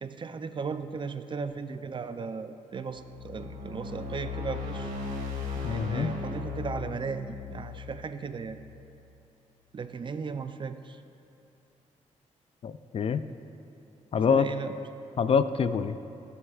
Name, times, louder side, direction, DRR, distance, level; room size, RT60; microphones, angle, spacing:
voice 1, 0.0-4.9 5.7-8.6 9.7-11.0 14.2-14.8, right 5 dB, 35° right, 10 dB, 0.5 m, -36 dB
sound 1, 2.9-9.1, left 4 dB, 80° right, 2.1 m, -37 dB
voice 2, 5.6-6.1 12.6-13.2 14.1-14.5 15.2-16.0, left 6 dB, 45° left, 12 dB, 0.4 m, -25 dB
16.5 x 7.9 x 2.4 m, 2.9 s
cardioid pair, 80°, 13 cm